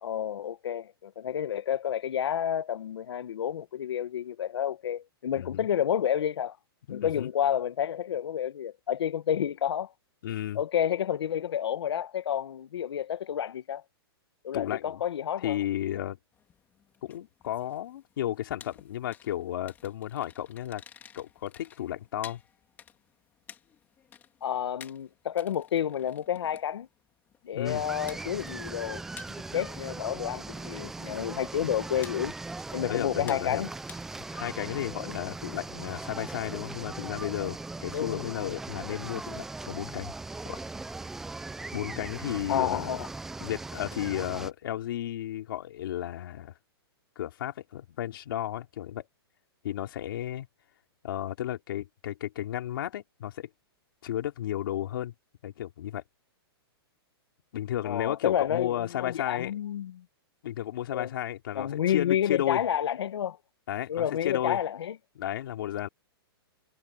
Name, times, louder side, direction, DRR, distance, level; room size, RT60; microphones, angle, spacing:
voice 1, 0.0-6.6 6.9-9.9 10.5-13.8 14.4-15.6 24.4-26.9 27.4-29.0 29.5-32.3 32.7-33.7 35.0-35.1 37.9-38.3 42.5-43.1 57.8-60.0 60.9-61.1 61.5-63.4 63.9-64.9, left 9 dB, 85° left, 1.0 m, -30 dB
voice 2, 5.2-5.7 6.9-7.3 10.2-10.6 14.5-15.0 15.4-16.2 17.0-20.8 21.1-22.4 27.5-27.8 29.5-29.6 32.8-33.6 34.3-40.1 40.4-40.6 41.7-42.9 43.4-46.5 47.1-49.0 49.6-50.5 51.0-53.5 54.0-55.1 55.4-56.0 57.5-59.6 60.4-62.6 63.7-64.6 65.2-65.9, left 12 dB, 55° left, 3.3 m, -33 dB
sound 1, 16.3-34.4, left 8 dB, 15° left, 2.8 m, -54 dB
sound 2, 27.7-44.5, right 3 dB, 5° right, 0.4 m, -39 dB
hypercardioid pair, 170°, 13 cm